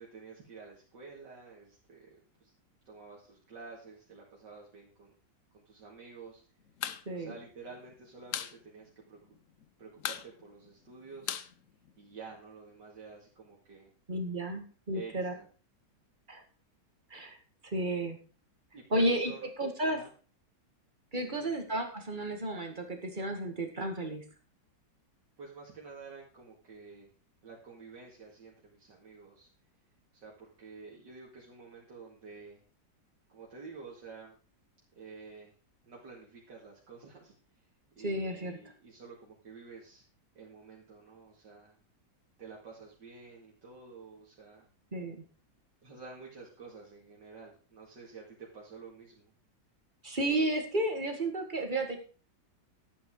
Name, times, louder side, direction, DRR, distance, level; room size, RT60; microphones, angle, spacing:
voice 1, 0.0-2.5 2.9-5.1 5.5-6.4 7.1-9.2 9.8-11.4 12.0-13.9 14.9-15.5 18.7-19.5 19.9-20.1 21.1-21.5 25.4-27.1 27.4-29.5 30.1-32.6 33.3-34.4 34.9-35.5 35.8-37.3 38.0-40.1 40.3-41.7 42.4-44.7 45.8-49.3, right 4 dB, 70° right, -3 dB, 2.8 m, -50 dB
sound 1, 6.7-7.0 7.3-7.4 7.7-8.6 8.9-9.0 9.2-9.6 10.0-12.4, left 10 dB, 60° left, 0.9 m, -38 dB
voice 2, 14.1-15.3 16.3-16.4 17.1-17.4 17.6-18.2 18.9-19.3 19.6-20.0 21.1-24.2 38.0-38.6 44.9-45.2 50.0-52.0, right 1 dB, 25° right, 5 dB, 2.0 m, -32 dB
11.5 x 8.6 x 4.8 m, 0.38 s
omnidirectional pair, 2.0 m